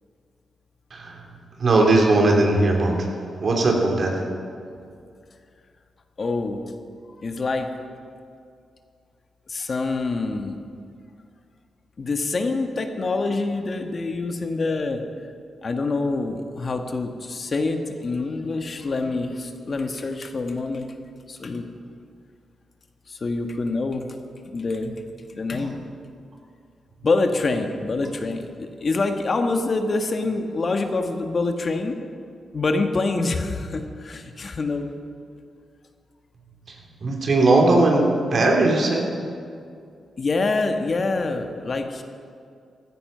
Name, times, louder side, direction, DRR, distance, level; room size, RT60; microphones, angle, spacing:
voice 1, 1.6-3.1 3.4-4.2 37.0-39.0, right 2 dB, 60° right, 0 dB, 3.1 m, -19 dB
voice 2, 6.2-6.6 7.2-7.7 9.5-10.6 12.0-15.0 15.6-21.0 21.3-21.7 23.1-24.1 24.5-24.9 25.3-26.0 27.0-32.0 32.5-34.9 40.2-42.0, left 3 dB, 50° left, 5 dB, 1.5 m, -26 dB
15.5 x 13.0 x 5.7 m, 2.3 s
supercardioid pair, 50°, 0 cm